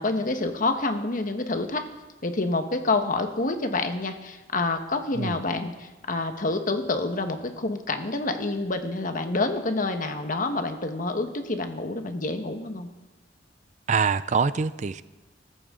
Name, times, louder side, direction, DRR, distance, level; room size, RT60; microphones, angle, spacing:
voice 1, 0.0-1.8 2.2-12.9, left 2 dB, 50° left, 6 dB, 1.3 m, -28 dB
voice 2, 13.9-15.0, right 5 dB, 40° right, 15 dB, 0.4 m, -24 dB
22.5 x 14.0 x 3.8 m, 1.2 s
head